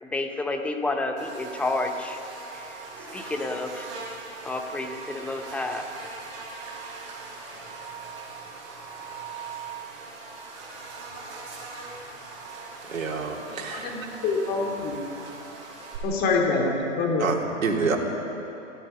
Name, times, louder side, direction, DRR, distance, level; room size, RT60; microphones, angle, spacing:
voice 1, 0.0-2.2 2.5-2.6 3.1-3.9 4.4-5.8, left 2 dB, 5° left, 5 dB, 0.7 m, -30 dB
Buzz, 1.2-16.0, right 4 dB, 30° right, 6.4 m, -40 dB
voice 2, 12.9-14.1 17.2-18.0, right 4 dB, 85° right, 0 dB, 3.4 m, -28 dB
voice 3, 13.7-15.0 16.0-17.2, left 3 dB, 25° left, 0 dB, 2.8 m, -25 dB
28.0 x 16.5 x 5.6 m, 2.8 s
hypercardioid pair, 145°, 39 cm